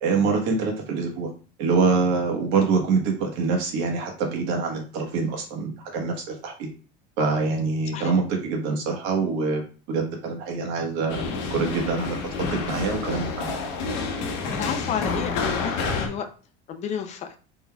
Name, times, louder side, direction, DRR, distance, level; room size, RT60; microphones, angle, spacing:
voice 1, 0.0-1.3 1.6-6.7 7.2-9.6 9.9-11.2 11.5-12.3 12.7-13.5, right 4 dB, 65° right, 1 dB, 1.3 m, -25 dB
sound 1, 11.1-16.1, left 4 dB, 60° left, 0.9 m, -29 dB
voice 2, 14.5-16.3 16.7-17.3, left 8 dB, 35° left, 7 dB, 0.4 m, -31 dB
4.1 x 3.9 x 2.3 m, 0.36 s
cardioid pair, 150°, 20 cm